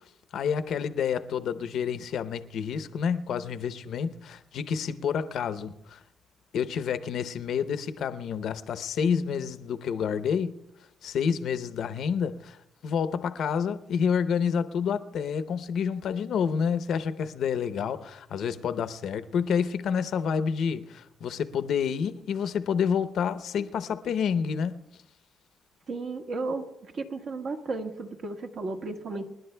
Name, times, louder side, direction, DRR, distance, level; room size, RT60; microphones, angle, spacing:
voice 1, 0.3-6.0 6.5-10.6 11.0-12.6 12.8-24.8, left 7 dB, 70° left, 0.7 m, -29 dB
voice 2, 25.9-29.2, right 3 dB, 60° right, 1.5 m, -34 dB
29.0 x 11.0 x 2.2 m
cardioid pair, 90°, 0 cm